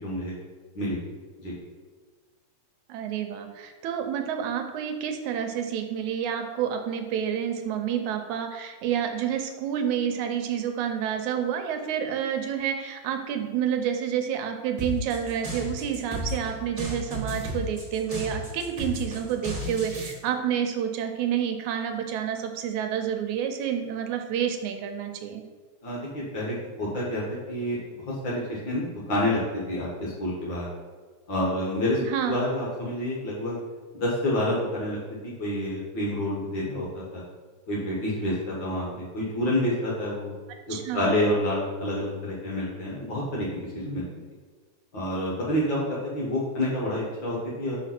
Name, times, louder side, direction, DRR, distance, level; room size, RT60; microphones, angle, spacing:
voice 1, 0.0-0.3 0.7-1.0 1.4-1.5 25.8-27.8 28.1-29.4 29.7-30.7 31.3-32.0 32.2-33.5 33.9-35.0 35.4-37.2 37.7-40.3 40.7-44.1 44.9-47.8, left 1 dB, 55° left, -5 dB, 1.6 m, -28 dB
voice 2, 2.9-25.4 32.0-32.4 40.7-41.3, right 8 dB, 85° right, 5 dB, 2.1 m, -29 dB
sound 1, 14.8-20.1, equal, 20° right, 1.0 m, -33 dB
5.0 x 4.2 x 5.9 m, 1.5 s
omnidirectional pair, 3.3 m